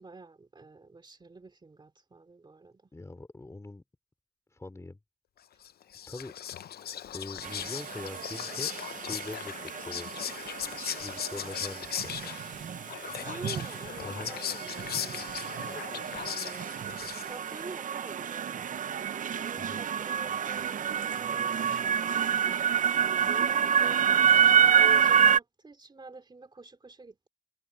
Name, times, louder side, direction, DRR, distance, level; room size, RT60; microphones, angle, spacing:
voice 1, 0.0-2.9 13.1-27.3, right 3 dB, 25° right, 2.7 m, -48 dB
voice 2, 2.9-3.8 4.5-5.0 6.1-6.3 7.1-8.7 8.9-10.1 11.0-12.1 14.0-14.4 19.6-19.8, left 2 dB, 15° left, 3.2 m, -42 dB
Whispering, 5.6-17.6, left 10 dB, 60° left, 0.6 m, -38 dB
sound 1, 7.4-25.4, right 8 dB, 45° right, 0.6 m, -28 dB
cardioid pair, 105°, 19 cm